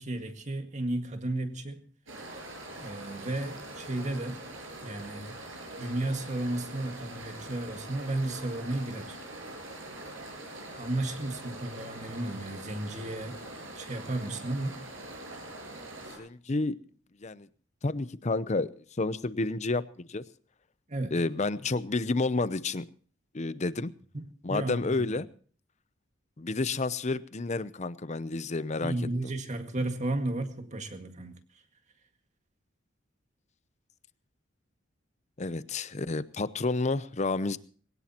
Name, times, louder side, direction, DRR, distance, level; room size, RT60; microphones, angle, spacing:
voice 1, 0.0-1.8 2.8-4.4 4.8-5.4 5.8-9.2 10.8-13.4 13.8-14.8 20.9-21.1 24.1-24.2 24.5-25.0 28.8-31.4, right 2 dB, 35° right, 1.9 m, -33 dB
sound 1, 2.1-16.2, right 2 dB, 85° right, 7.6 m, -43 dB
voice 2, 16.0-16.8 17.2-17.5 17.8-20.2 21.1-22.9 23.3-23.9 24.4-25.3 26.4-28.9 35.4-37.6, left 3 dB, 35° left, 0.7 m, -30 dB
21.0 x 18.0 x 3.0 m
head